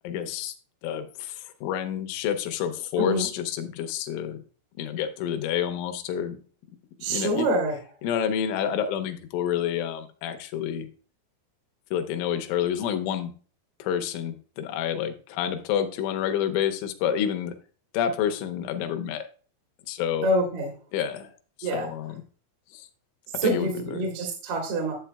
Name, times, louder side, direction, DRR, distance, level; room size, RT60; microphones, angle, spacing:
voice 1, 0.0-0.5 0.8-4.4 4.8-6.4 7.1-7.5 8.0-10.9 11.9-13.3 13.8-17.5 17.9-19.3 19.9-20.3 20.9-21.3 21.6-22.2 22.7-22.9 23.4-24.0, left 9 dB, 80° left, 8 dB, 3.0 m, -28 dB
voice 2, 3.0-3.3 7.0-7.8 20.2-20.7 21.6-21.9 23.3-24.9, right 1 dB, 60° right, 0 dB, 3.0 m, -26 dB
11.0 x 8.1 x 2.3 m, 0.40 s
omnidirectional pair, 6.0 m